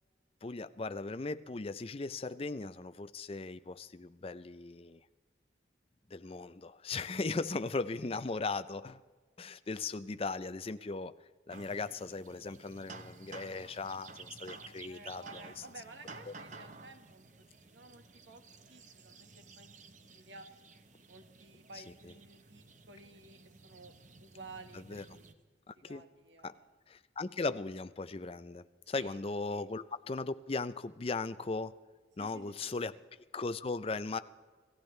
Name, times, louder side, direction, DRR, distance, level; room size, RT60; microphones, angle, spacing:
voice 1, 0.4-5.0 6.1-9.0 9.4-11.1 11.5-15.2 16.3-16.4 24.9-25.0 25.7-26.0 26.4-26.5 26.9-31.8 32.2-32.9 33.3-34.2, left 3 dB, 30° left, 12 dB, 0.5 m, -38 dB
sound 1, 11.5-25.3, right 3 dB, 45° right, 1.0 m, -53 dB
voice 2, 14.8-17.2 17.6-18.4 18.7-19.7 20.1-20.5 21.1-25.3 25.8-26.7 28.8-29.2 29.5-29.6 32.2-33.0, right 3 dB, 80° right, 7 dB, 1.5 m, -54 dB
28.0 x 15.0 x 3.3 m, 1.5 s
head